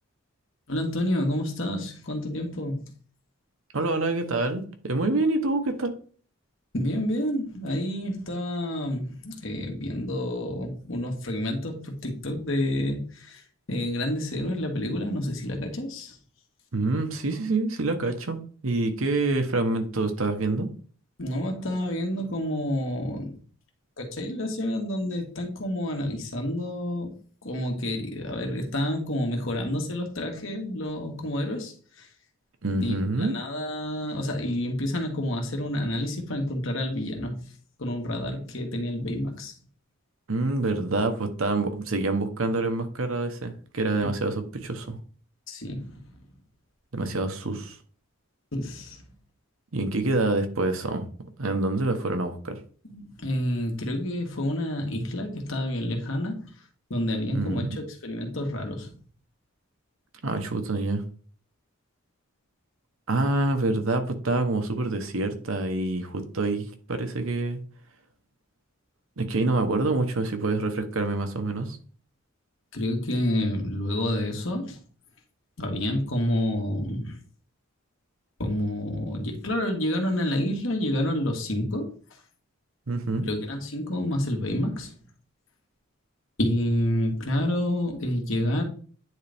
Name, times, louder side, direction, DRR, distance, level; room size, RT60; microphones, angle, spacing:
voice 1, 0.7-2.9 6.7-13.4 13.7-16.2 21.2-23.4 24.0-27.1 27.4-32.1 32.8-37.4 37.8-39.5 44.0-44.1 45.5-46.0 48.5-49.0 52.9-56.5 56.9-58.9 72.7-74.8 75.6-77.2 78.4-81.9 83.2-85.0 86.4-88.6, left 1 dB, 65° left, 2 dB, 1.6 m, -29 dB
voice 2, 3.7-5.9 16.7-18.4 18.6-20.7 32.6-33.3 40.3-45.0 46.9-47.7 49.7-51.0 51.4-52.6 57.3-57.8 60.2-61.0 63.1-67.6 69.2-71.8 82.9-83.3, right 2 dB, 70° right, 7 dB, 1.1 m, -26 dB
9.5 x 4.0 x 3.5 m, 0.43 s
head